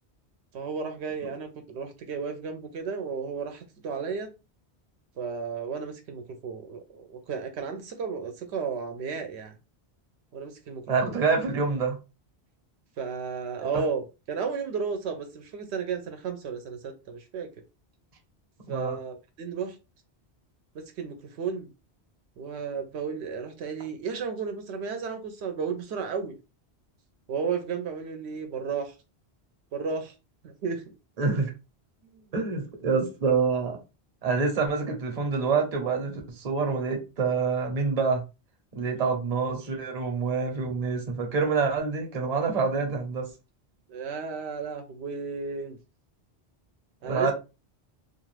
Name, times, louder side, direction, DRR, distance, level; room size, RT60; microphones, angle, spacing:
voice 1, 0.5-4.3 5.2-9.5 10.3-11.2 13.0-17.5 18.7-19.8 20.7-21.7 22.4-26.4 27.3-28.9 29.7-30.1 30.4-30.8 32.1-32.2 38.9-39.2 43.9-45.8 47.0-47.3, right 5 dB, 80° right, 0.8 m, -33 dB
voice 2, 10.9-12.0 13.7-13.8 18.7-19.0 31.2-31.5 32.3-33.8 34.2-38.2 38.7-43.3 47.0-47.3, right 5 dB, 40° right, 0.8 m, -26 dB
2.4 x 2.4 x 3.2 m
omnidirectional pair, 1.1 m